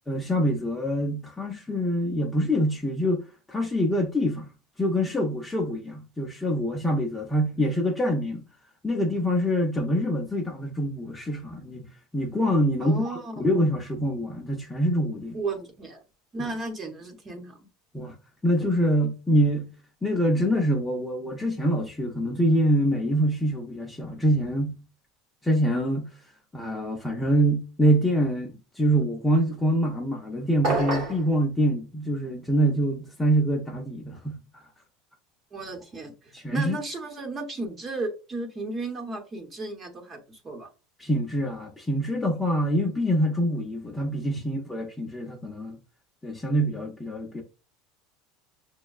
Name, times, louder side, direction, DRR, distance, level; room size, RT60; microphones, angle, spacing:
voice 1, 0.1-4.5 4.8-8.4 8.8-11.9 12.1-15.4 16.4-16.5 17.9-18.1 18.4-19.7 20.0-24.8 25.4-26.1 26.5-34.6 36.3-36.8 41.0-45.8 46.2-47.4, equal, 10° left, 0.6 m, -25 dB
voice 2, 12.8-13.5 15.3-16.0 16.3-17.7 35.5-40.7, right 3 dB, 25° right, 0.9 m, -34 dB
sound 1, 30.6-31.3, right 2 dB, 50° right, 0.9 m, -26 dB
6.1 x 2.1 x 2.3 m
supercardioid pair, 140°, 0 cm